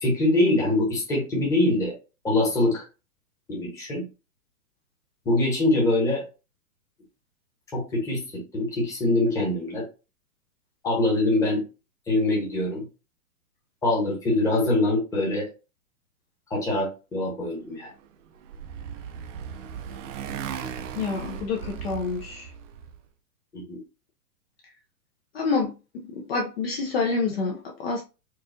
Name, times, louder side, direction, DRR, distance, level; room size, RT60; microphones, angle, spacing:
voice 1, 0.0-1.9 2.2-2.8 3.5-4.1 5.2-6.2 7.7-9.8 10.8-11.6 12.1-12.8 13.8-15.5 16.5-17.9 23.5-23.8, left 2 dB, 5° left, 1.0 m, -24 dB
Motorcycle, 18.0-23.0, right 7 dB, 55° right, 0.6 m, -37 dB
voice 2, 21.0-22.5 25.3-25.7 26.2-28.0, left 4 dB, 40° left, 0.6 m, -27 dB
4.6 x 2.4 x 2.6 m
hypercardioid pair, 155°, 45 cm